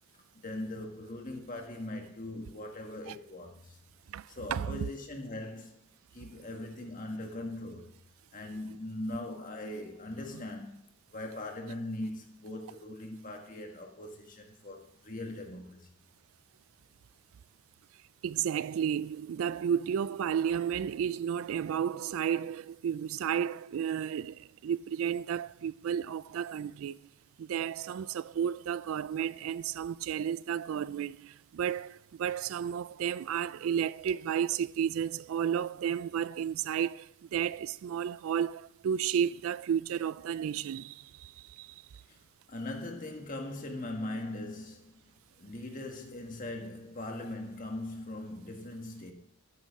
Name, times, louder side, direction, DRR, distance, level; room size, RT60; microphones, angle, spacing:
voice 1, 0.4-3.8 4.3-5.8 6.1-7.9 8.3-16.0 42.1-42.2 42.5-45.0 45.4-49.1, left 1 dB, 35° left, 1.6 m, -40 dB
voice 2, 4.1-4.9 18.2-27.0 27.4-41.7, right 8 dB, 65° right, 0.3 m, -32 dB
13.5 x 9.4 x 3.6 m
head